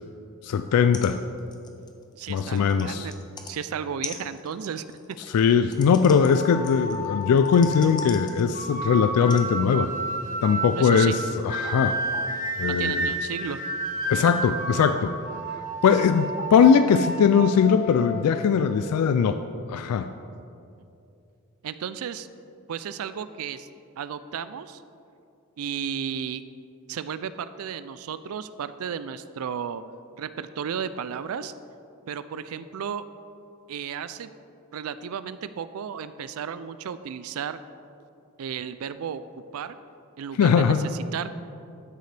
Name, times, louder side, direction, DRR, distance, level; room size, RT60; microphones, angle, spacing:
voice 1, 0.4-1.2 2.3-3.1 5.3-9.9 10.4-12.3 12.6-13.1 14.1-15.1 15.8-19.4 19.7-20.1 40.4-40.9, left 6 dB, 90° left, 10 dB, 0.3 m, -20 dB
sound 1, 0.7-0.8 0.9-1.1 1.4-3.6 4.0-8.8 9.3-9.5 10.3-10.4, left 4 dB, 20° left, 0.5 m, -42 dB
voice 2, 2.1-5.2 10.7-11.1 12.6-13.6 21.6-22.3 22.7-23.7 24.0-24.8 25.6-26.4 26.9-29.8 30.2-31.5 32.1-33.0 33.7-34.3 34.7-37.6 38.4-39.2 39.5-39.8 40.2-41.3, right 7 dB, 75° right, 13 dB, 0.4 m, -34 dB
sound 2, 6.2-19.0, right 1 dB, 35° left, 1.0 m, -32 dB
12.5 x 6.6 x 3.3 m, 2.6 s
head